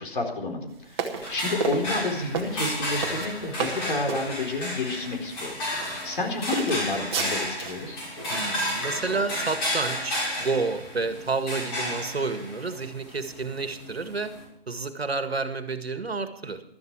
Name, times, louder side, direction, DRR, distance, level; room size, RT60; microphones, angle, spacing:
voice 1, 0.0-8.0, left 2 dB, 55° left, 2 dB, 4.3 m, -30 dB
sound 1, 0.9-4.3 5.0-5.2 5.7-6.2 6.5-7.8, right 5 dB, 25° right, 1.8 m, -32 dB
sound 2, 1.2-14.4, left 1 dB, 25° left, 7.0 m, -32 dB
voice 2, 8.3-14.3 14.7-16.6, right 4 dB, 75° right, 9 dB, 1.9 m, -30 dB
15.5 x 13.0 x 4.8 m, 0.77 s
figure-of-eight pair, 150°, 31 cm